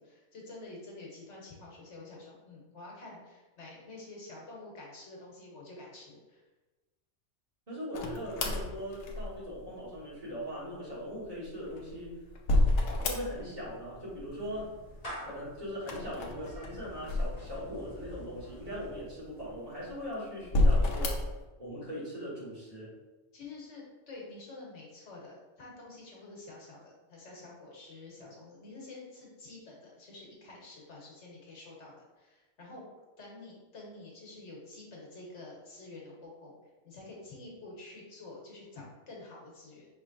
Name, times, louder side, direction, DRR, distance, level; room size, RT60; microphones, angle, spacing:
voice 1, 0.0-6.4 23.3-32.9 33.2-36.5 36.8-39.9, left 2 dB, 80° left, -3 dB, 1.4 m, -48 dB
voice 2, 7.7-12.2 13.0-14.7 15.2-21.2 21.6-22.9, equal, 35° right, -8 dB, 1.5 m, -40 dB
sound 1, 7.9-9.6 11.4-13.7 13.9-14.6 15.8-17.9 18.5-18.6 19.4-20.0 20.4-21.4, left 1 dB, 60° left, 0.8 m, -29 dB
Clapping / Meow, 13.4-19.6, equal, 35° left, 1.3 m, -49 dB
5.2 x 3.1 x 2.5 m, 1.2 s
omnidirectional pair, 1.2 m